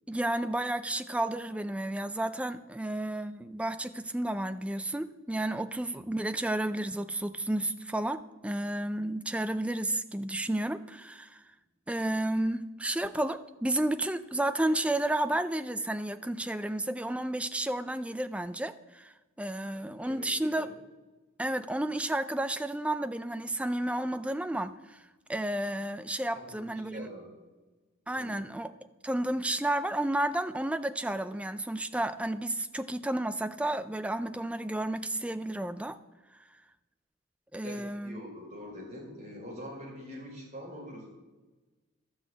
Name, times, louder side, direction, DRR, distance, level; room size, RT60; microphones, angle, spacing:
voice 1, 0.1-11.4 11.9-19.1 19.4-20.7 21.4-25.0 25.3-27.1 28.1-28.7 29.0-36.0 37.5-38.2, right 1 dB, 5° right, 11 dB, 0.4 m, -32 dB
voice 2, 20.0-20.7 26.3-27.3 28.1-28.4 37.6-41.1, equal, 30° right, -4 dB, 4.4 m, -44 dB
12.5 x 6.2 x 8.3 m, 1.2 s
head